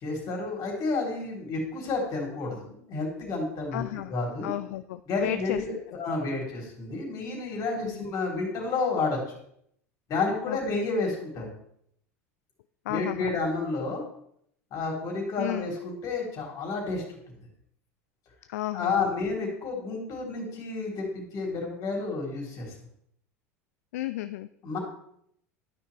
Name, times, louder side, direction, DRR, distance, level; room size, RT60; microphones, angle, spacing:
voice 1, 0.0-3.8 4.1-4.5 5.1-9.2 10.1-11.5 12.9-14.0 14.7-17.0 18.7-22.7 24.6-24.8, left 3 dB, 45° left, 0 dB, 3.4 m, -30 dB
voice 2, 3.7-4.1 4.4-5.6 7.8-8.0 10.5-10.6 12.9-13.4 15.4-15.8 18.5-19.1 23.9-24.5, left 14 dB, 70° left, 12 dB, 0.3 m, -33 dB
12.0 x 5.7 x 3.3 m, 0.70 s
hypercardioid pair, 80°, 8 cm